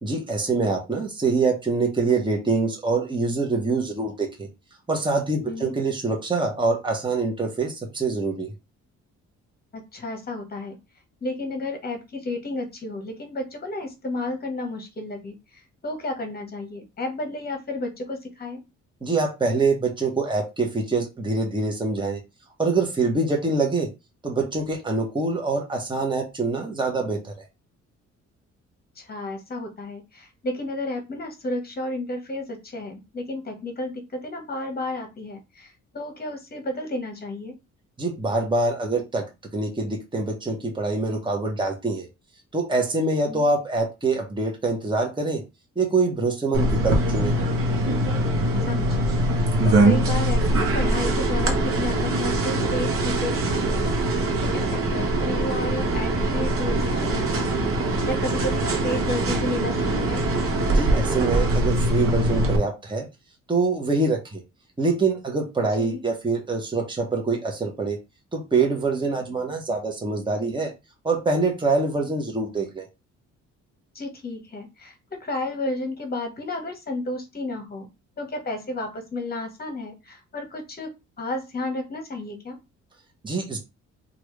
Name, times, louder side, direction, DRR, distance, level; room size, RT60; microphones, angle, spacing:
voice 1, 0.0-4.5 4.9-8.5 19.0-22.2 22.6-23.9 24.2-27.5 38.0-39.2 39.5-42.1 42.5-45.4 45.8-47.4 60.7-63.1 63.5-64.4 64.8-68.0 68.3-70.7 71.0-72.8 83.2-83.6, right 3 dB, 15° right, 1 dB, 1.1 m, -25 dB
voice 2, 9.7-10.8 11.2-15.4 15.8-18.6 29.0-37.5 43.3-43.4 48.6-53.9 54.5-57.7 58.1-60.2 65.8-66.0 73.9-77.9 78.2-80.9 81.2-82.6, left 2 dB, 30° left, 4 dB, 1.2 m, -32 dB
sound 1, 46.5-62.6, right 1 dB, 45° right, 1.0 m, -23 dB
3.1 x 2.6 x 3.2 m, 0.25 s
cardioid pair, 90°, 30 cm